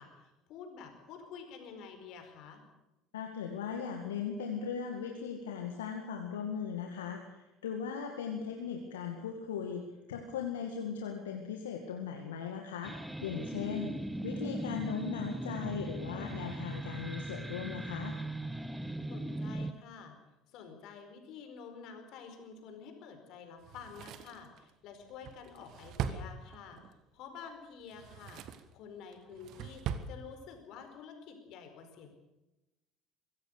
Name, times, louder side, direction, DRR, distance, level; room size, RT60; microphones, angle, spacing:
voice 1, 0.0-2.6 13.7-14.1 19.1-20.2 20.5-26.8 27.1-28.4 28.7-32.2, left 6 dB, 60° left, 6 dB, 4.7 m, -49 dB
voice 2, 3.1-9.8 10.1-12.9 13.2-13.9 14.2-18.2, left 7 dB, 80° left, 2 dB, 2.1 m, -38 dB
sound 1, 12.8-19.7, right 1 dB, 5° right, 1.3 m, -39 dB
Drawer open or close, 23.6-26.9 27.8-28.7 29.1-30.1 30.4-30.5, right 8 dB, 55° right, 1.6 m, -41 dB
24.0 x 16.5 x 6.6 m, 0.97 s
figure-of-eight pair, 60°, 0 cm